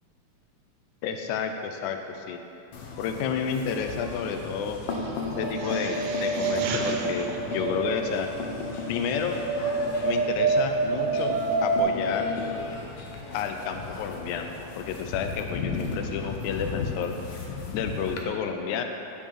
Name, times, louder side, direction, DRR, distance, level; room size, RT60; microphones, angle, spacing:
voice 1, 1.0-2.4 3.0-4.8 5.4-8.3 8.9-9.4 10.0-12.3 13.3-14.5 14.8-17.1 17.7-18.8, left 7 dB, 85° left, 5 dB, 2.0 m, -31 dB
sound 1, 2.7-18.2, left 4 dB, 70° left, 1.6 m, -35 dB
sound 2, 5.3-11.8, right 3 dB, 75° right, 1.9 m, -28 dB
6.4 x 6.3 x 7.5 m, 2.9 s
omnidirectional pair, 3.4 m